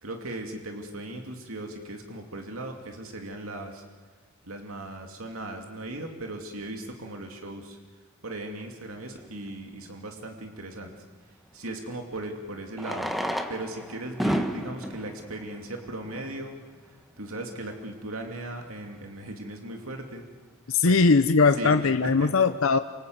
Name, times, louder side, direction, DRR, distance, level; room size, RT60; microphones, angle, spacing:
voice 1, 0.0-3.8 4.5-7.8 8.2-11.0 11.5-13.1 13.5-16.6 17.2-20.2 20.9-21.0 21.5-22.3, right 1 dB, 80° right, 3 dB, 2.6 m, -37 dB
Fireworks, 9.2-9.3 11.5-11.6 12.7-16.5 17.2-17.3 17.5-17.6 17.8-17.9 18.4-18.7, equal, ahead, 1.3 m, -32 dB
voice 2, 20.7-22.8, left 4 dB, 70° left, 9 dB, 0.8 m, -20 dB
28.0 x 26.5 x 7.9 m, 1.4 s
head